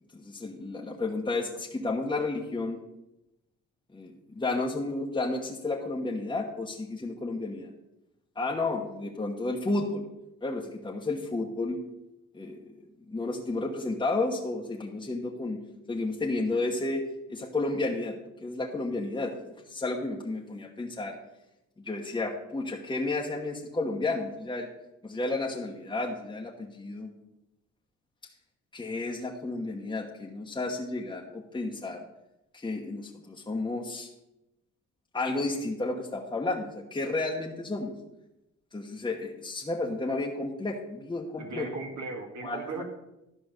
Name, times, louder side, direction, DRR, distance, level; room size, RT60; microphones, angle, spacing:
voice 1, 0.1-2.8 3.9-7.7 8.3-10.1 10.4-11.8 12.3-15.6 15.9-17.0 17.3-18.1 18.4-19.3 19.7-21.2 21.8-24.7 25.0-27.1 28.7-32.0 32.5-34.1 35.1-37.9 38.7-41.7 42.4-42.7, left 2 dB, 15° left, -2 dB, 1.2 m, -32 dB
voice 2, 41.4-42.8, right 3 dB, 70° right, 3 dB, 2.0 m, -37 dB
12.0 x 5.0 x 6.6 m, 0.92 s
cardioid pair, 90°, 30 cm